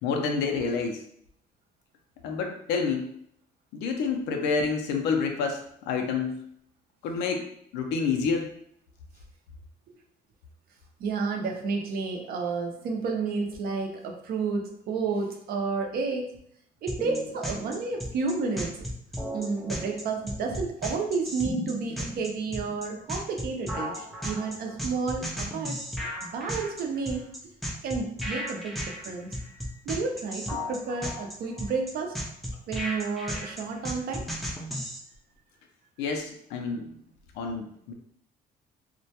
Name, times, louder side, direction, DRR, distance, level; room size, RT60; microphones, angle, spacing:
voice 1, 0.0-1.0 2.2-3.1 3.7-6.4 7.0-8.5 29.4-29.8 36.0-37.0 37.4-37.9, left 5 dB, 90° left, 3 dB, 0.4 m, -29 dB
voice 2, 11.0-16.4 16.8-18.8 19.3-25.8 26.2-27.3 27.8-29.3 29.9-32.1 32.7-34.2, right 4 dB, 60° right, 2 dB, 0.5 m, -31 dB
sound 1, 16.9-35.0, equal, ahead, 0.4 m, -35 dB
2.1 x 2.1 x 2.7 m, 0.69 s
cardioid pair, 110°, 17 cm